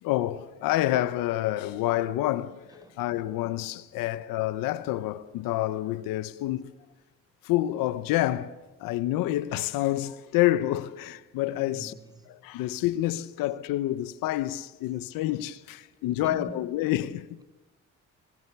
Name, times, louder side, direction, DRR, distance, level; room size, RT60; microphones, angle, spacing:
voice 1, 0.0-6.7 7.4-11.9 12.3-17.4, left 15 dB, 85° left, 0.9 m, -28 dB
voice 2, 11.5-12.3 15.9-16.7, right 2 dB, 10° right, 4.3 m, -46 dB
24.5 x 22.0 x 6.9 m
supercardioid pair, 60°, 33 cm